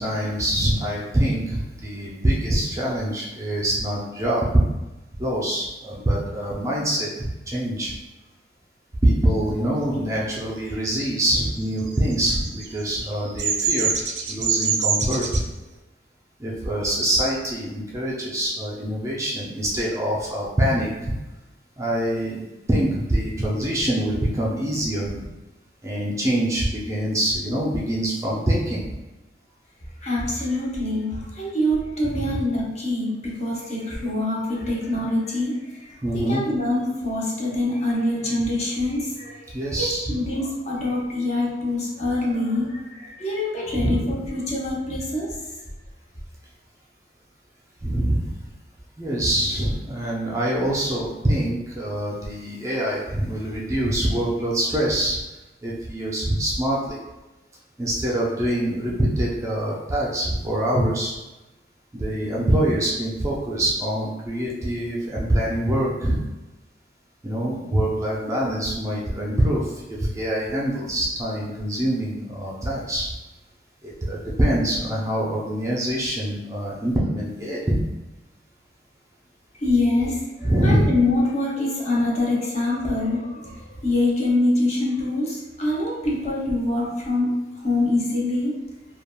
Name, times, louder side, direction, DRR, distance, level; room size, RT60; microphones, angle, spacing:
voice 1, 0.0-4.4 5.2-7.9 9.0-13.9 14.3-15.4 16.4-21.1 21.8-25.3 25.8-28.9 36.0-36.4 39.5-40.1 43.8-44.0 47.8-48.3 49.0-55.2 55.6-57.0 57.8-61.1 61.9-66.3 67.2-73.1 73.8-77.8 80.4-80.9, right 1 dB, 15° right, -4 dB, 0.4 m, -24 dB
Bird vocalization bird call bird song, 11.7-15.4, right 6 dB, 80° right, 0.4 m, -24 dB
voice 2, 30.0-45.4 79.6-88.6, left 2 dB, 40° left, -4 dB, 0.6 m, -25 dB
3.3 x 2.2 x 2.2 m, 1.1 s
head